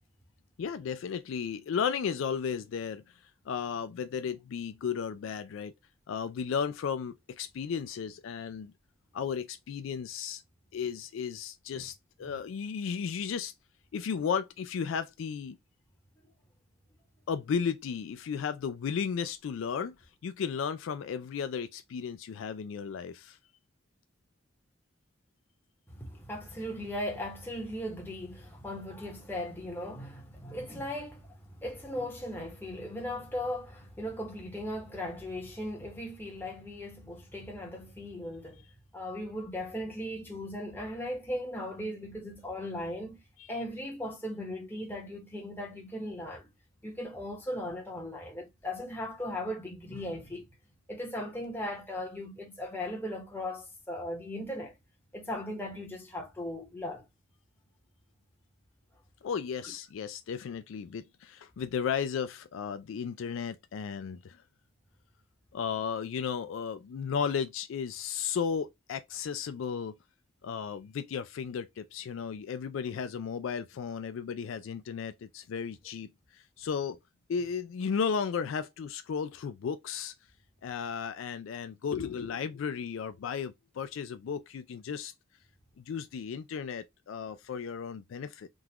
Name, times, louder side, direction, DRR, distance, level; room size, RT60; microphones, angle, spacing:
voice 1, 0.6-3.0 3.5-5.7 6.1-8.7 9.1-10.4 10.7-13.5 13.9-15.6 17.3-20.0 20.2-23.4 43.4-43.5 59.2-64.4 65.5-69.9 70.4-77.0 77.3-80.1 80.6-85.1 85.8-88.5, left 6 dB, 70° left, 0.3 m, -34 dB
voice 2, 25.9-38.6 38.9-43.2 43.5-46.5 46.8-50.5 50.9-54.8 55.1-57.0, left 1 dB, 10° left, 1.1 m, -38 dB
3.7 x 2.4 x 2.9 m
head